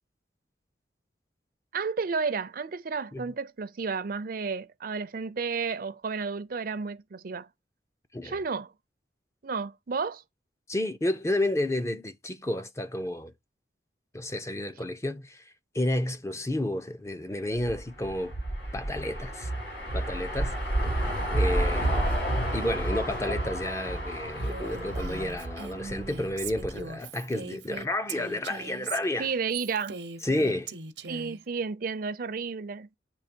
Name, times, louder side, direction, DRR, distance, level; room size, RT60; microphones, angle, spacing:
voice 1, 1.7-7.5 8.2-8.7 9.4-10.2 29.2-30.0 31.1-32.9, right 5 dB, 55° right, 0.5 m, -32 dB
voice 2, 10.7-13.3 14.1-15.4 15.7-18.3 18.7-19.5 19.9-20.6 21.0-22.1 22.5-29.3 30.2-30.7, left 1 dB, 15° left, 0.5 m, -31 dB
sound 1, 17.6-26.8, right 1 dB, 85° left, 4.1 m, -30 dB
Female speech woman speaking, 24.3-31.4, right 5 dB, 85° right, 0.8 m, -40 dB
8.7 x 3.2 x 4.4 m
head